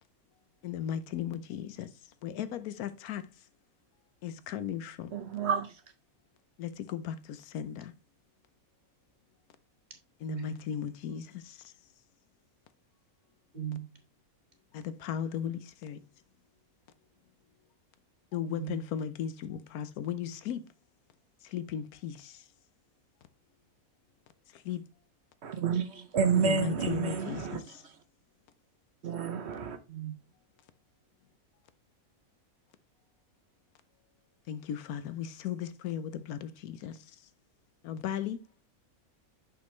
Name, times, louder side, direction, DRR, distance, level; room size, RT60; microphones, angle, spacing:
voice 1, 0.6-3.4 4.2-5.1 6.6-7.9 10.2-11.7 14.7-16.0 18.3-20.6 21.4-22.5 24.5-24.8 26.3-27.8 34.5-37.2 37.8-38.4, left 9 dB, 90° left, 1.2 m, -36 dB
voice 2, 5.1-5.8 25.4-28.0 29.0-29.8, right 6 dB, 55° right, 0.8 m, -30 dB
voice 3, 10.2-10.6 13.5-14.0 18.5-18.9 29.9-30.1, right 11 dB, 30° right, 1.4 m, -39 dB
6.3 x 5.8 x 3.1 m
omnidirectional pair, 1.6 m